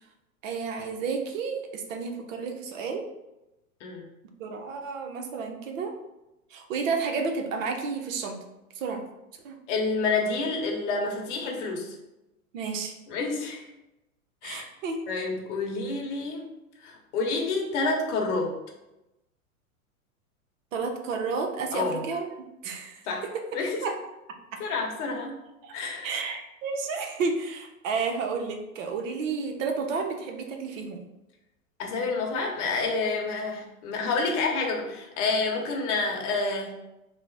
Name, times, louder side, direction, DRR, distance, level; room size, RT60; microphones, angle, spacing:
voice 1, 0.4-3.0 4.4-5.9 6.5-8.4 8.8-9.0 9.4-9.6 12.5-12.9 14.4-15.0 20.7-22.3 22.6-23.0 23.8-23.9 25.6-25.7 26.0-31.0, right 4 dB, 60° right, 4 dB, 0.7 m, -31 dB
voice 2, 9.7-11.9 13.1-13.7 14.4-14.7 15.1-16.5 16.8-18.5 21.7-22.0 23.1-23.2 23.5-23.8 24.6-25.4 25.7-26.1 31.8-36.7, left 3 dB, 55° left, 0 dB, 0.9 m, -28 dB
3.0 x 2.0 x 3.8 m, 0.95 s
hypercardioid pair, 110°, 44 cm